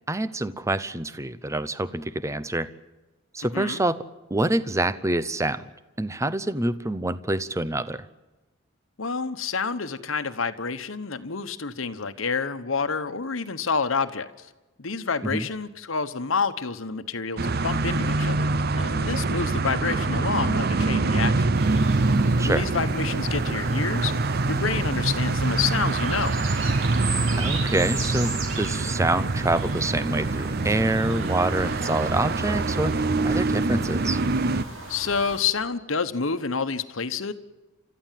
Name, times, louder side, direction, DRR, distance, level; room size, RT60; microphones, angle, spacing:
voice 1, 0.1-2.7 3.3-4.0 4.3-5.6 6.0-8.1 15.2-15.5 22.4-22.6 27.4-34.2, right 2 dB, 15° right, 15 dB, 0.7 m, -26 dB
voice 2, 9.0-14.3 14.8-21.5 22.4-24.1 24.5-26.4 34.9-37.3, left 5 dB, 80° left, 10 dB, 1.2 m, -28 dB
sound 1, 17.4-34.6, right 3 dB, 50° right, 0.6 m, -25 dB
sound 2, 21.5-35.4, right 3 dB, 80° right, 4.6 m, -38 dB
30.0 x 13.5 x 7.6 m, 1.1 s
head